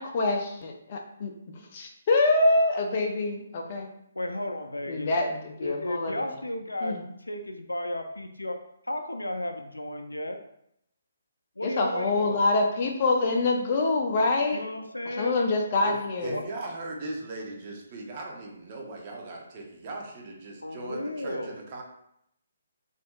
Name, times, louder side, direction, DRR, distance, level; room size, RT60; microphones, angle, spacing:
voice 1, 0.0-1.3 1.7-3.9 4.9-6.1 6.8-7.0 11.6-14.6 15.2-16.4, left 2 dB, 40° left, 2 dB, 0.6 m, -25 dB
voice 2, 4.2-5.1 5.6-8.6 8.9-10.4 11.6-12.5 14.5-15.4 16.3-16.4 20.6-21.6, left 1 dB, 85° left, 6 dB, 0.4 m, -33 dB
voice 3, 15.8-21.8, right 2 dB, 35° right, 0 dB, 0.7 m, -38 dB
4.2 x 2.6 x 2.3 m, 0.76 s
figure-of-eight pair, 140°, 0 cm